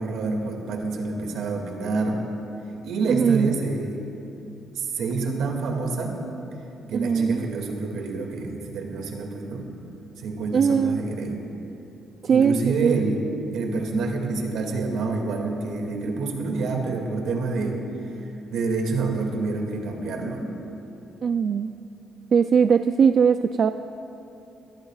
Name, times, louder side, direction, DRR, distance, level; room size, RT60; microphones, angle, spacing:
voice 1, 0.0-2.2 2.8-4.0 4.7-6.2 6.9-9.7 10.2-11.4 12.3-13.3 13.5-17.8 18.5-20.4, right 3 dB, 80° right, 2 dB, 2.2 m, -27 dB
voice 2, 3.1-3.5 6.9-7.4 10.5-11.0 12.2-12.6 12.8-13.0 21.2-21.7 22.3-23.7, right 6 dB, 55° right, 9 dB, 0.4 m, -20 dB
25.0 x 18.0 x 2.4 m, 2.9 s
cardioid pair, 90°, 0 cm